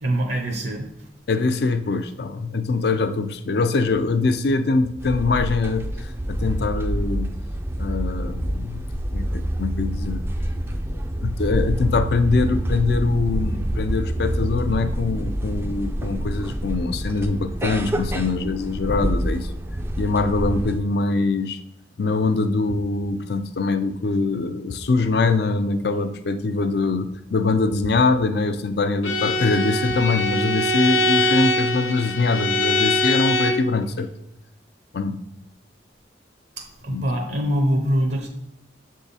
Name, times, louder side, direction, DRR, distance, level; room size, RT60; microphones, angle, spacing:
voice 1, 0.0-0.9 36.6-38.3, equal, 65° right, 3 dB, 0.7 m, -23 dB
voice 2, 1.3-7.3 7.8-10.2 11.2-19.5 20.0-21.6 22.0-34.1 34.9-35.2 36.9-37.0, left 3 dB, 60° left, 10 dB, 0.4 m, -23 dB
sound 1, 5.0-20.8, equal, 15° right, 0.4 m, -27 dB
Bowed string instrument, 29.0-33.7, left 1 dB, 85° left, 0.7 m, -22 dB
6.9 x 3.6 x 4.1 m, 0.85 s
head